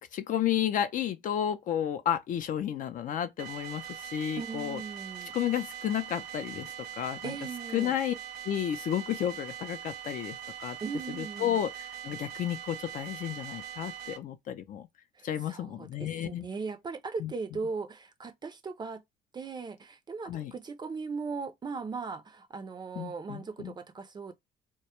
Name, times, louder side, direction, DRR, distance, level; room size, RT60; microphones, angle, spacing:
voice 1, 0.0-4.8 5.3-7.3 7.7-8.1 8.4-10.8 11.1-14.9 15.2-16.5 17.2-17.3 20.2-20.5 23.0-23.7, left 10 dB, 50° left, 0.4 m, -32 dB
sound 1, 3.4-14.2, right 10 dB, 65° right, 0.6 m, -42 dB
voice 2, 4.4-5.3 7.2-7.9 10.8-11.6 15.1-19.0 19.3-24.3, right 4 dB, 25° right, 0.4 m, -38 dB
2.2 x 2.0 x 2.8 m
cardioid pair, 110°, 17 cm